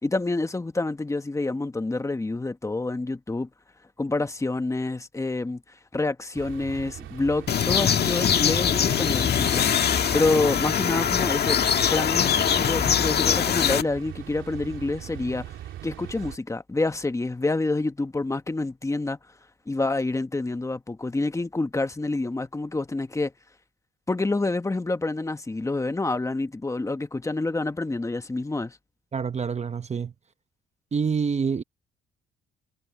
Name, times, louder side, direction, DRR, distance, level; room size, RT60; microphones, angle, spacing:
voice 1, 0.0-3.5 4.0-5.6 5.9-12.3 12.6-15.5 15.8-19.2 19.7-23.3 24.1-28.8, left 2 dB, 15° left, 1.4 m, -27 dB
taking the train, 6.3-16.4, right 12 dB, 80° right, 3.2 m, -41 dB
sound 1, 7.5-13.8, left 8 dB, 55° left, 1.7 m, -22 dB
voice 2, 29.1-30.1 30.9-31.6, right 6 dB, 35° right, 1.0 m, -26 dB
cardioid pair, 90°, 20 cm